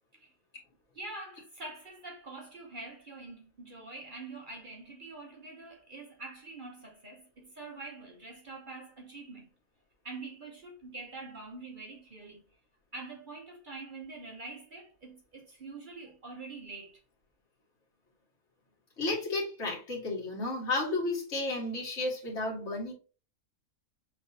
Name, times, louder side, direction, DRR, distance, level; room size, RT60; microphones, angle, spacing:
voice 1, 0.9-9.5 10.0-12.4 12.9-17.0, right 3 dB, 45° right, 0.8 m, -45 dB
voice 2, 19.0-22.9, left 2 dB, 55° left, 1.9 m, -32 dB
5.5 x 3.2 x 2.7 m
omnidirectional pair, 1.5 m